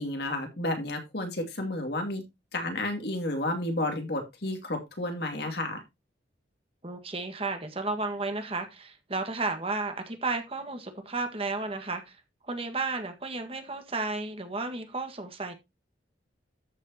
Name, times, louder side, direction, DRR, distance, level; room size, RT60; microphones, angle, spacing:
voice 1, 0.0-2.2 2.5-5.8, left 1 dB, 60° left, 2.6 m, -31 dB
voice 2, 6.8-12.2 12.5-15.5, right 3 dB, 30° right, 1.7 m, -33 dB
13.5 x 6.5 x 2.9 m
head